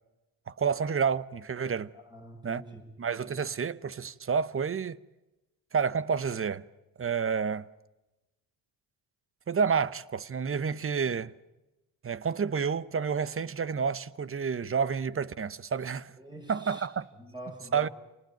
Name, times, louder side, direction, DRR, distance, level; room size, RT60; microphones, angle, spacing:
voice 1, 0.5-1.9 2.4-2.6 3.0-5.0 5.7-6.6 7.0-7.7 9.5-11.3 12.0-16.1 16.5-17.0 17.7-17.9, right 6 dB, 30° right, 0.9 m, -29 dB
voice 2, 1.9-2.8 3.3-3.4 16.2-16.9 17.1-17.9, equal, 10° right, 7.6 m, -46 dB
27.5 x 19.5 x 9.2 m
cardioid pair, 85°, 43 cm